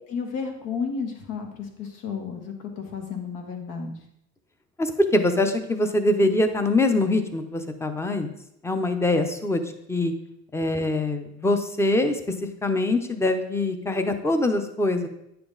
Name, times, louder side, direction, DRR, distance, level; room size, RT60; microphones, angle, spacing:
voice 1, 0.1-4.0, left 5 dB, 70° left, 3 dB, 2.0 m, -32 dB
voice 2, 4.8-8.3 8.6-10.1 10.5-12.1 12.6-15.1, left 2 dB, 10° left, 8 dB, 0.7 m, -23 dB
9.9 x 6.9 x 4.0 m, 0.79 s
cardioid pair, 135°, 33 cm